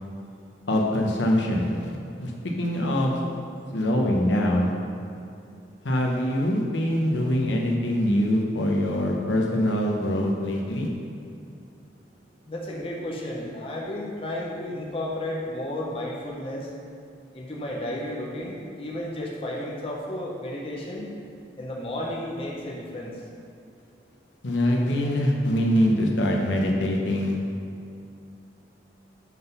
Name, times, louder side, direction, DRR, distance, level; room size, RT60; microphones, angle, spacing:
voice 1, 0.7-3.2 3.7-4.7 5.8-10.9 24.4-27.3, equal, 85° left, 0 dB, 0.9 m, -24 dB
voice 2, 12.5-16.7 17.3-21.1 21.6-23.2, left 1 dB, 30° left, -3 dB, 0.9 m, -33 dB
7.6 x 3.9 x 5.5 m, 2.6 s
head